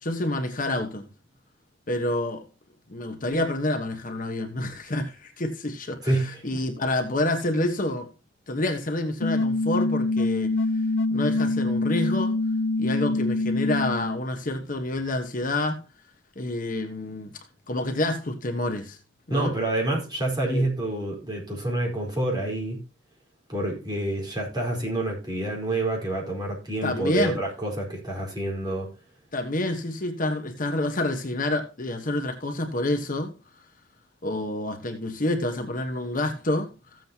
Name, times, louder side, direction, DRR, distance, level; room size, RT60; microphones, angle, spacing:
voice 1, 0.0-1.1 1.9-2.4 2.9-8.1 8.5-10.6 11.1-12.4 12.8-15.8 16.4-17.4 17.7-19.0 19.3-19.5 20.4-20.7 26.8-27.4 29.3-33.3 34.2-37.0, left 1 dB, 45° left, 1.3 m, -28 dB
voice 2, 6.0-6.6 19.3-22.8 23.5-28.9, right 2 dB, 20° right, 4.6 m, -28 dB
sound 1, 9.2-14.2, left 2 dB, 75° left, 0.5 m, -25 dB
15.5 x 7.7 x 2.9 m
head